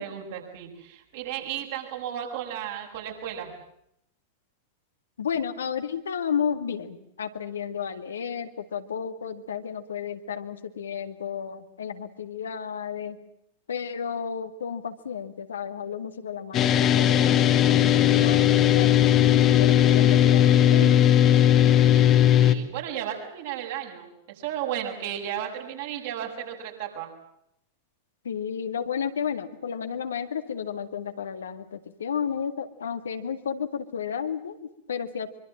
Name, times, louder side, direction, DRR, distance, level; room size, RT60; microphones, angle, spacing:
voice 1, 0.0-3.5 22.4-27.1, right 10 dB, 55° right, 1 dB, 7.0 m, -34 dB
voice 2, 5.2-13.2 13.7-19.1 19.4-21.0 28.2-35.3, left 7 dB, 65° left, 8 dB, 2.0 m, -32 dB
sound 1, 16.5-22.5, left 11 dB, 30° left, 2.0 m, -18 dB
25.0 x 24.5 x 7.5 m, 0.76 s
figure-of-eight pair, 90°, 0 cm